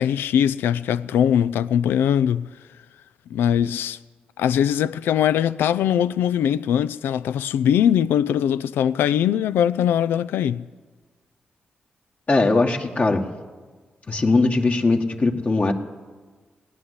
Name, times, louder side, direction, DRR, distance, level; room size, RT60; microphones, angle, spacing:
voice 1, 0.0-2.5 3.3-4.0 4.4-10.6, left 9 dB, 90° left, 0.4 m, -21 dB
voice 2, 12.3-13.3 14.1-15.7, left 3 dB, 45° left, 1.6 m, -20 dB
17.5 x 9.7 x 8.1 m
supercardioid pair, 50°, 4 cm